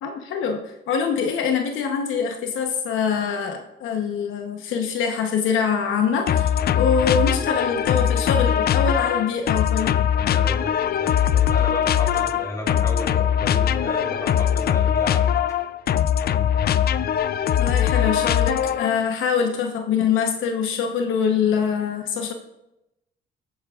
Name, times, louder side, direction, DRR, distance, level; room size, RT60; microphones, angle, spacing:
voice 1, 0.0-10.0 17.6-22.3, left 6 dB, 80° left, 4 dB, 1.0 m, -24 dB
sound 1, 6.3-19.0, left 9 dB, 50° left, 0.4 m, -21 dB
voice 2, 10.3-15.4 17.0-17.2, left 1 dB, 15° left, -1 dB, 3.6 m, -34 dB
16.0 x 8.5 x 2.4 m, 0.91 s
cardioid pair, 90°, 20 cm